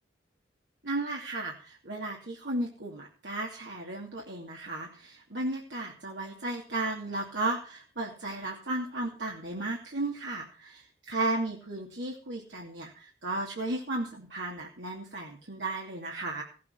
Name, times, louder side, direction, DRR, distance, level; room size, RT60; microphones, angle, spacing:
voice 1, 0.8-16.4, right 2 dB, 80° right, -2 dB, 2.8 m, -34 dB
16.5 x 8.4 x 5.8 m, 0.37 s
head